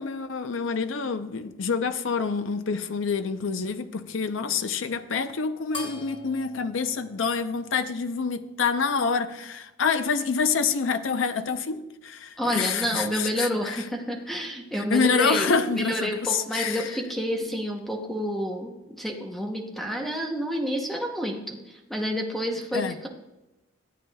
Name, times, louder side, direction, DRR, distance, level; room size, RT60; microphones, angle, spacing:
voice 1, 0.0-13.8 14.9-16.9 22.7-22.9, left 5 dB, 90° left, 0.6 m, -27 dB
sound 1, 5.7-8.5, left 2 dB, 25° left, 1.0 m, -43 dB
voice 2, 12.4-23.1, equal, ahead, 0.8 m, -29 dB
13.5 x 8.7 x 2.3 m
head